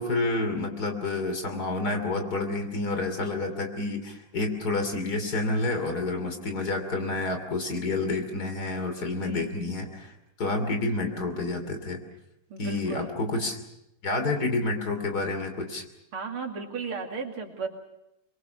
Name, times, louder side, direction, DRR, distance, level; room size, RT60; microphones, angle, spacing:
voice 1, 0.0-10.1 10.4-12.0 12.6-13.6 14.0-15.8, left 2 dB, 45° left, 6 dB, 3.4 m, -29 dB
voice 2, 9.1-9.6 12.5-13.1 16.1-17.7, right 5 dB, 85° right, 3 dB, 3.4 m, -35 dB
24.5 x 22.5 x 7.0 m, 0.85 s
omnidirectional pair, 2.3 m